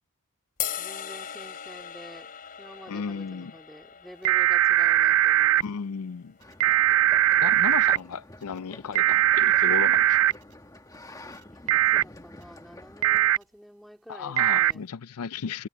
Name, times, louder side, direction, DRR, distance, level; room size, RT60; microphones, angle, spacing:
sound 1, 0.6-6.8, left 10 dB, 40° left, 3.9 m, -40 dB
voice 1, 0.8-2.3 2.6-5.6 7.3-8.1 11.5-14.8, equal, ahead, 3.7 m, -48 dB
voice 2, 2.9-3.5 5.6-6.4 7.4-10.3 14.1-15.7, left 6 dB, 75° left, 0.5 m, -34 dB
sound 2, 4.2-5.6 6.6-8.0 8.9-10.3 11.7-12.0 13.0-13.4 14.4-14.7, right 12 dB, 65° right, 0.3 m, -20 dB
sound 3, 6.4-13.2, left 1 dB, 15° left, 1.4 m, -48 dB
head